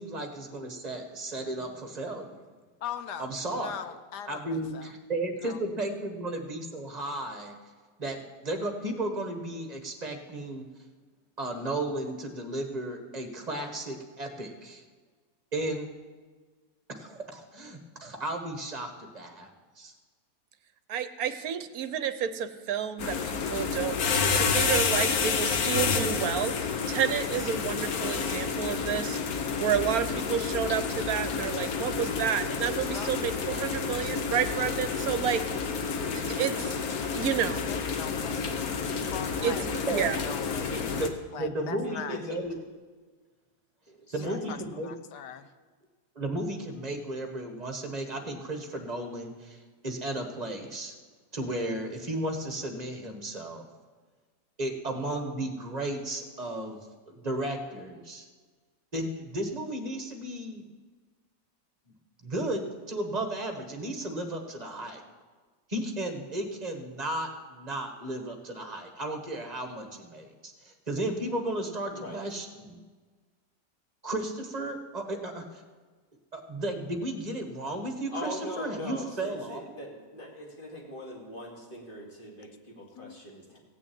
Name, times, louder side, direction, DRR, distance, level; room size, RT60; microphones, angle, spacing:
voice 1, 0.0-2.4 3.2-3.8 4.2-7.5 8.0-10.7 11.4-14.8 15.5-15.9 17.0-19.5 19.8-19.9 39.9-40.2 40.6-42.5 44.1-44.9 46.1-50.9 51.3-53.6 54.6-56.8 57.1-58.3 58.9-60.6 62.2-65.0 65.7-72.8 74.0-75.6 76.3-79.8, right 1 dB, 25° right, 4 dB, 1.5 m, -34 dB
voice 2, 2.8-4.9 5.4-5.6 32.9-33.1 37.7-39.7 39.9-41.0 41.3-42.2 44.1-44.6 44.8-45.5 83.0-83.2, left 9 dB, 80° left, 11 dB, 1.3 m, -41 dB
voice 3, 20.9-26.5 26.9-29.2 29.6-35.4 36.1-36.7 37.1-37.7 39.4-40.2, right 8 dB, 65° right, 11 dB, 1.2 m, -30 dB
sound 1, 23.0-41.1, left 5 dB, 65° left, 1.4 m, -30 dB
voice 4, 41.6-42.4 43.9-44.5 71.9-72.2 78.1-83.6, left 1 dB, 30° left, -2 dB, 2.6 m, -41 dB
16.0 x 6.2 x 8.7 m, 1.4 s
omnidirectional pair, 1.8 m